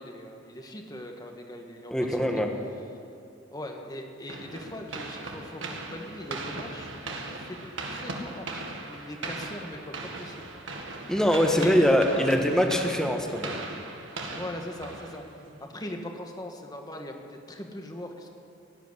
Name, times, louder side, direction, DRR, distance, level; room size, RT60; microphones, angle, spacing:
voice 1, 0.0-2.4 3.5-10.5 11.6-12.6 14.3-15.2 15.6-18.3, left 1 dB, 20° left, 3 dB, 1.5 m, -40 dB
voice 2, 1.9-2.5 11.1-13.6, equal, 5° left, 3 dB, 1.3 m, -23 dB
sound 1, 4.3-15.6, right 2 dB, 70° right, 1.9 m, -38 dB
17.0 x 8.3 x 9.8 m, 2.5 s
head